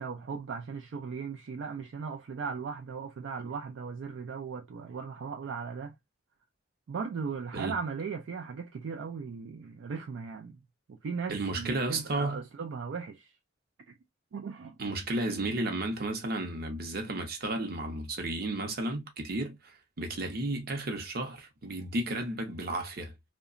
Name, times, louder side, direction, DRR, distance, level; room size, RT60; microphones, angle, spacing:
voice 1, 0.0-5.9 6.9-10.6 10.9-13.3 13.9-14.0 14.3-14.8, right 5 dB, 70° right, 0.4 m, -37 dB
voice 2, 11.3-12.4 14.8-23.1, right 2 dB, 55° right, 0.7 m, -33 dB
2.8 x 2.2 x 2.4 m
head